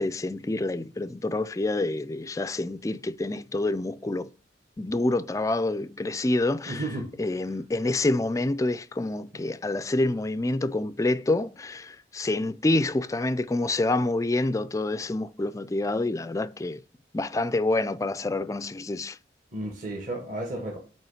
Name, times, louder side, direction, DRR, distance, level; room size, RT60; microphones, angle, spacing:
voice 1, 0.0-4.3 4.8-6.8 7.2-16.8 17.1-19.2, left 2 dB, 15° left, 0.3 m, -27 dB
voice 2, 6.7-7.1 19.5-20.8, right 1 dB, 45° right, 1.4 m, -33 dB
9.0 x 3.1 x 5.7 m
head